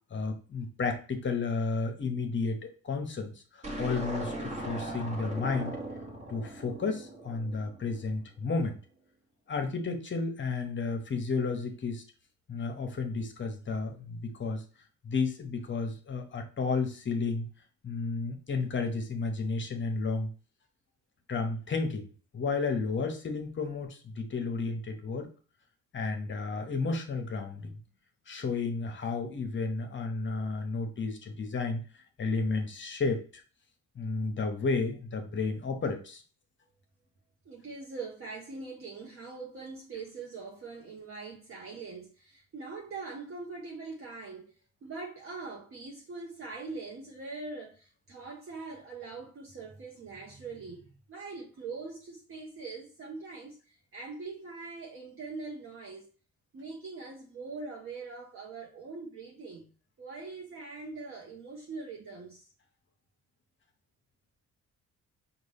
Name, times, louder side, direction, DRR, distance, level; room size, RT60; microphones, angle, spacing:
voice 1, 0.1-2.6 2.8-5.7 6.3-8.8 9.5-12.0 12.5-14.6 15.0-17.5 17.8-20.3 21.3-22.1 22.3-25.3 25.9-27.8 28.3-31.8 32.2-33.4 33.9-36.2, left 4 dB, 40° left, 0.9 m, -32 dB
sound 1, 3.6-8.0, right 1 dB, 20° right, 1.2 m, -39 dB
voice 2, 37.4-56.1 56.5-59.7 60.0-62.5, right 4 dB, 45° right, 0.9 m, -42 dB
5.1 x 2.4 x 3.4 m
cardioid pair, 90°, 30 cm